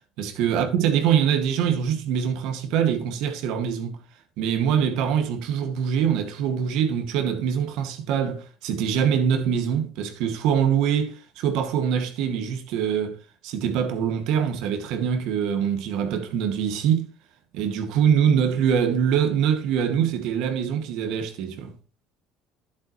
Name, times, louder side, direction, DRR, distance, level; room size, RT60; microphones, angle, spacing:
voice 1, 0.2-4.0 4.4-13.2 13.4-17.1 17.5-21.7, right 8 dB, 70° right, 2.0 m, -24 dB
11.0 x 8.6 x 3.2 m
supercardioid pair, 85°, 0 cm